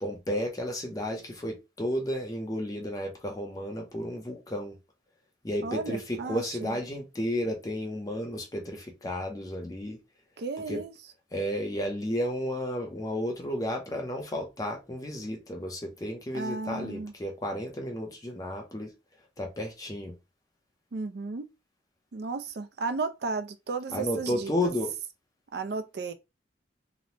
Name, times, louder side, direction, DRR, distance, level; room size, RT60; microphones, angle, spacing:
voice 1, 0.0-4.8 5.4-10.0 10.7-10.8 11.3-18.9 19.4-20.1 23.9-24.9, left 1 dB, 20° left, 0.5 m, -32 dB
voice 2, 5.6-6.8 10.4-10.9 16.3-17.1 20.9-21.5 22.1-24.5 25.5-26.1, right 4 dB, 60° right, 0.4 m, -34 dB
3.0 x 2.1 x 2.7 m
head